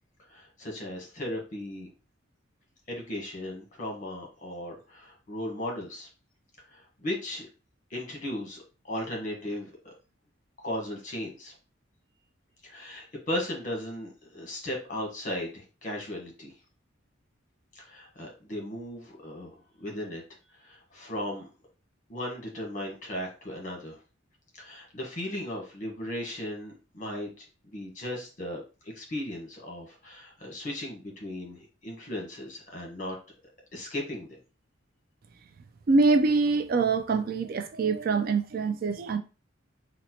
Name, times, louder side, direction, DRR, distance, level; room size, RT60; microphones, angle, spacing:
voice 1, 0.3-1.9 2.9-6.1 6.7-7.5 7.9-9.7 10.6-11.5 12.6-16.5 17.7-20.2 20.6-21.5 22.1-24.0 24.6-28.6 28.9-33.1 33.7-34.4, left 1 dB, 40° left, 1.1 m, -36 dB
voice 2, 35.9-39.2, right 4 dB, 45° right, 0.3 m, -24 dB
4.0 x 2.1 x 2.8 m
head